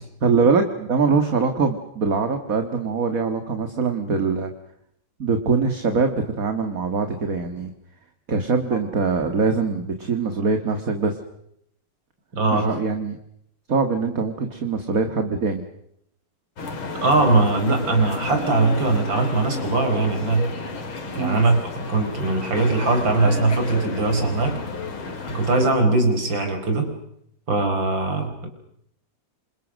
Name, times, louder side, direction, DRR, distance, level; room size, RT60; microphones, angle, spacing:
voice 1, 0.2-4.5 5.2-7.7 8.3-11.2 12.5-13.2 13.7-15.6 21.2-21.4, right 4 dB, 45° right, 6 dB, 2.2 m, -23 dB
voice 2, 12.3-12.7 17.0-20.5 21.1-24.6 25.3-26.9 27.5-28.5, right 3 dB, 65° right, 6 dB, 5.5 m, -21 dB
sound 1, 16.6-25.7, left 3 dB, 90° left, 3.6 m, -32 dB
28.0 x 26.5 x 6.5 m, 0.74 s
omnidirectional pair, 2.2 m